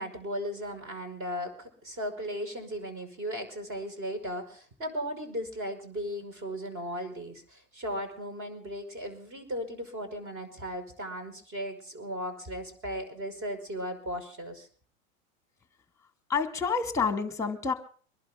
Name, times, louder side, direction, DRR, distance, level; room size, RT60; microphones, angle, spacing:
voice 1, 0.0-14.7, equal, 30° right, 9 dB, 5.4 m, -36 dB
voice 2, 16.3-17.7, left 5 dB, 5° left, 7 dB, 2.4 m, -28 dB
24.0 x 11.5 x 3.8 m, 0.42 s
hypercardioid pair, 115°, 43 cm